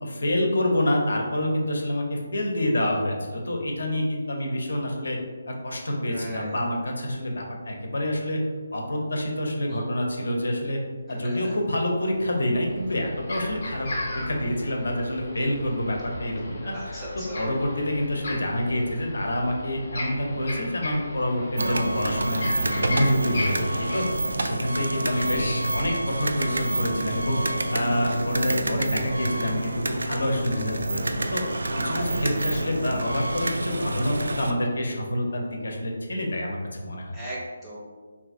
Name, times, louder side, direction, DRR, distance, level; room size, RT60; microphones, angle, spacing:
voice 1, 0.0-5.2 5.5-8.4 8.7-10.8 11.1-23.7 23.9-24.0 24.4-27.4 27.7-31.4 31.8-37.1, left 1 dB, 80° left, 1 dB, 0.7 m, -27 dB
voice 2, 6.1-6.5 9.7-9.8 11.2-11.3 16.7-17.5 28.0-28.1 31.9-32.1 37.1-37.8, right 1 dB, 5° right, -8 dB, 0.5 m, -38 dB
sound 1, 12.4-24.0, left 1 dB, 40° left, 0.7 m, -35 dB
sound 2, 21.6-34.5, right 2 dB, 85° right, 0.3 m, -28 dB
2.7 x 2.5 x 3.7 m, 1.5 s
hypercardioid pair, 175°, 0 cm